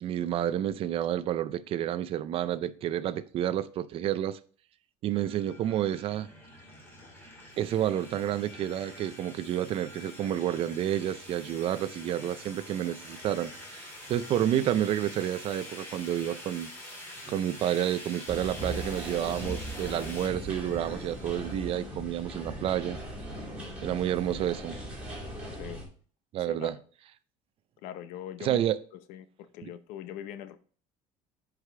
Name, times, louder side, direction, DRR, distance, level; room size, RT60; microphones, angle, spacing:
voice 1, 0.0-4.4 5.0-6.3 7.6-16.7 17.3-23.0 23.8-24.8 26.3-26.8 28.4-28.8, right 11 dB, 45° right, 0.4 m, -30 dB
sound 1, 5.1-21.9, left 1 dB, 15° left, 2.1 m, -46 dB
sound 2, 18.3-25.9, right 1 dB, 10° right, 2.5 m, -39 dB
voice 2, 26.4-26.7 27.8-28.6 29.1-30.6, left 10 dB, 80° left, 0.7 m, -42 dB
9.7 x 4.8 x 3.3 m
cardioid pair, 160°, 14 cm